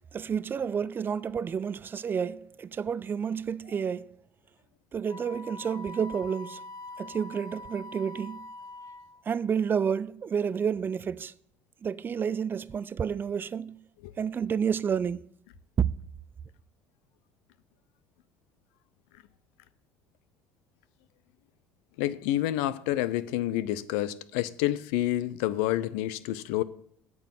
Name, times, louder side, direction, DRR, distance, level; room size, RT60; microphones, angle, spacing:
voice 1, 0.1-4.1 4.9-6.6 7.0-8.5 9.3-11.3 11.8-13.8 14.2-15.2, right 7 dB, 35° right, 0.5 m, -30 dB
Wind instrument woodwind instrument, 5.1-9.2, left 2 dB, 50° left, 1.3 m, -44 dB
voice 2, 22.0-26.6, left 14 dB, 75° left, 0.6 m, -28 dB
8.8 x 6.1 x 7.6 m
supercardioid pair, 80°, 6 cm